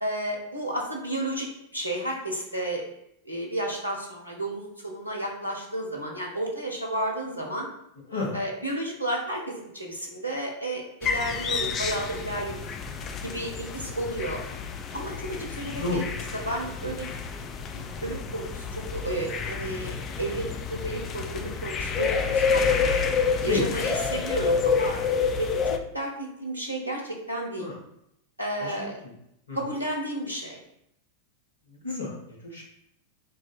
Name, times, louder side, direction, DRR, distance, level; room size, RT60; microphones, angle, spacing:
voice 1, 0.0-2.8 3.3-7.7 8.3-12.6 13.2-14.4 14.9-16.0 16.3-17.1 17.7-23.0 23.4-26.1 26.4-27.7 28.4-29.0 29.5-30.6, right 1 dB, 85° right, -1 dB, 0.6 m, -32 dB
sound 1, 11.0-25.8, left 5 dB, 30° left, 0.3 m, -29 dB
voice 2, 15.7-16.0 23.4-23.7 27.6-27.8 28.6-29.1 29.5-29.6 31.7-32.6, left 3 dB, 75° left, -3 dB, 0.9 m, -31 dB
2.6 x 2.4 x 4.0 m, 0.78 s
figure-of-eight pair, 90°, 0 cm